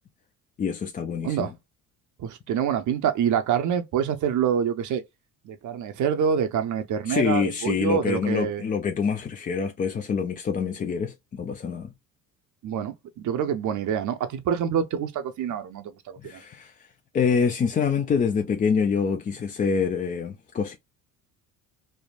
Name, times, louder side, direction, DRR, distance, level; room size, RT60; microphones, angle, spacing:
voice 1, 0.6-1.5 7.0-11.9 16.2-16.9 17.1-20.8, left 6 dB, 20° left, 0.3 m, -26 dB
voice 2, 2.2-5.0 5.5-8.6 12.6-16.4, right 8 dB, 45° right, 0.6 m, -26 dB
3.3 x 2.0 x 2.3 m
hypercardioid pair, 70°, 41 cm